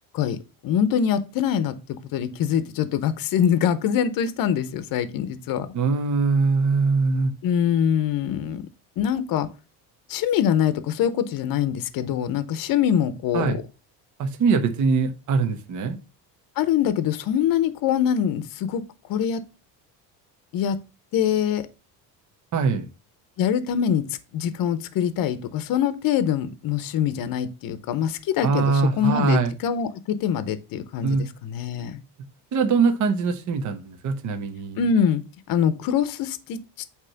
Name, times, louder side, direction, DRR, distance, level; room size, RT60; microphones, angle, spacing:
voice 1, 0.6-1.7 2.1-5.7 7.4-8.6 9.0-9.5 10.1-13.6 16.6-18.8 19.1-19.4 20.5-20.8 21.1-21.6 23.4-24.0 24.3-32.0 34.8-35.2 35.5-36.6, left 8 dB, 55° left, 13 dB, 0.9 m, -24 dB
voice 2, 5.7-7.3 13.3-13.6 14.2-16.0 22.5-22.8 28.4-29.5 31.0-31.3 32.5-34.8, right 4 dB, 45° right, 6 dB, 1.1 m, -22 dB
8.5 x 3.2 x 5.7 m, 0.30 s
cardioid pair, 135°, 42 cm